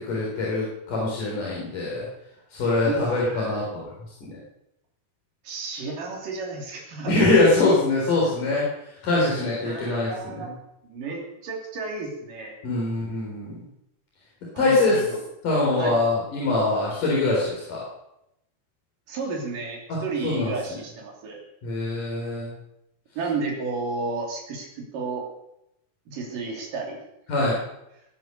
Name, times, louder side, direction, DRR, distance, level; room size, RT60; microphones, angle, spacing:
voice 1, 0.0-2.1 2.5-3.9 4.2-4.4 7.1-8.6 9.0-10.5 12.6-13.6 14.6-15.0 15.4-17.8 19.9-20.0 20.2-20.5 21.6-22.5 27.3-27.5, left 2 dB, 75° left, -5 dB, 5.6 m, -23 dB
voice 2, 2.9-3.6 5.4-7.1 8.2-8.3 9.6-10.5 10.8-12.6 14.5-15.2 15.8-16.0 19.1-21.4 23.2-25.3 26.1-27.0, right 4 dB, 85° right, 0 dB, 4.7 m, -32 dB
20.0 x 9.8 x 6.8 m, 0.83 s
omnidirectional pair, 3.7 m